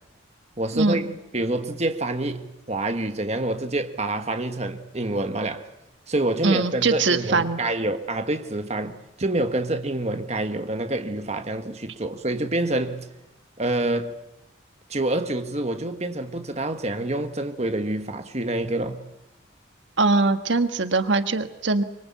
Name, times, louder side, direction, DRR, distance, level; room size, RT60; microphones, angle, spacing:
voice 1, 0.6-5.7 6.1-13.1 13.6-14.2 14.9-19.0, right 2 dB, 35° right, 1.5 m, -27 dB
voice 2, 6.4-7.6 20.0-21.8, right 3 dB, 70° right, 1.4 m, -22 dB
24.5 x 24.5 x 8.5 m
head